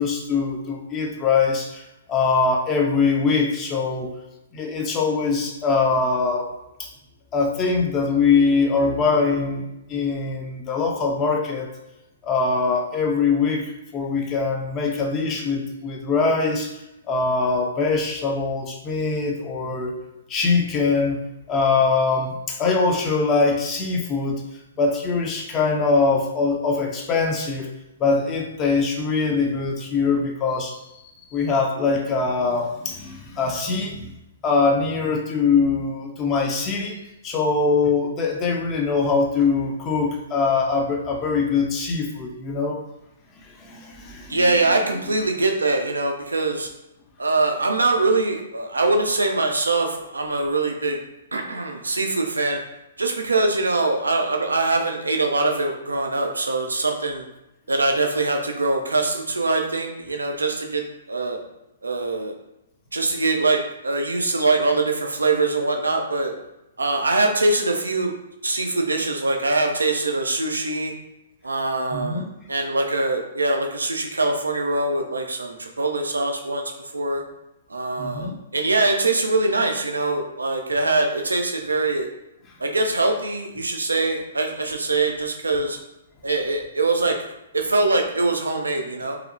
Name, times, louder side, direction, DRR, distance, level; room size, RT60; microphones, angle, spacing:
voice 1, 0.0-1.8 2.1-4.1 4.5-6.5 6.8-6.9 7.3-11.7 12.2-16.7 17.1-19.9 20.3-21.2 21.5-24.4 24.8-27.7 28.0-34.1 34.4-37.0 37.2-42.8 43.6-44.7 71.9-72.3 78.0-78.3, left 4 dB, 25° left, 1 dB, 0.5 m, -22 dB
voice 2, 44.3-46.7 47.2-51.0 51.3-52.6 53.0-57.2 57.7-60.8 61.1-61.4 61.8-62.3 62.9-66.3 66.8-68.1 68.4-70.9 71.4-76.6 76.9-77.2 77.7-82.1 82.6-85.8 86.2-87.2 87.5-89.1, right 2 dB, 85° right, 3 dB, 0.4 m, -23 dB
2.7 x 2.0 x 2.6 m, 0.90 s
figure-of-eight pair, 125°, 0 cm